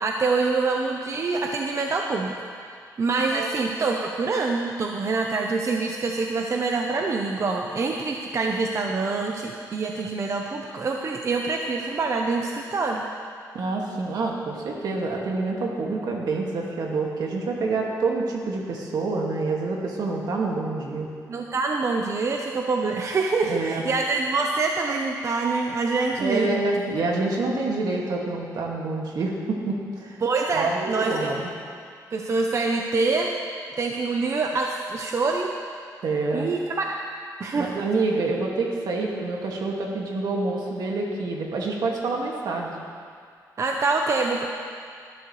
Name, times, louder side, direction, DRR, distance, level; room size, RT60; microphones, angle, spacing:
voice 1, 0.0-2.3 2.7-13.0 21.3-26.6 30.2-31.3 32.1-33.3 33.8-35.5 36.3-37.0 37.4-37.7 43.6-44.5, right 3 dB, 45° right, 1 dB, 0.8 m, -25 dB
voice 2, 13.5-21.1 23.4-23.8 26.2-30.2 30.5-31.5 36.0-36.5 37.5-42.7, right 3 dB, 75° right, -1 dB, 2.1 m, -27 dB
19.5 x 12.0 x 3.3 m, 2.2 s
cardioid pair, 110°, 7 cm